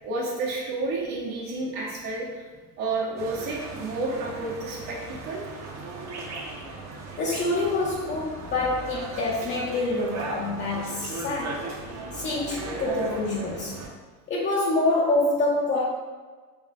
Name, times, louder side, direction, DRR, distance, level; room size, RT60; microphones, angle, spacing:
voice 1, 0.0-2.4 2.8-5.4 12.0-12.1, right 3 dB, 65° right, -3 dB, 1.1 m, -30 dB
sound 1, 3.2-13.9, right 3 dB, 35° right, 0.7 m, -37 dB
voice 2, 7.2-11.8 12.1-13.8 14.3-15.9, left 2 dB, 25° left, -5 dB, 0.5 m, -26 dB
3.4 x 3.1 x 2.5 m, 1.4 s
hypercardioid pair, 70°, 48 cm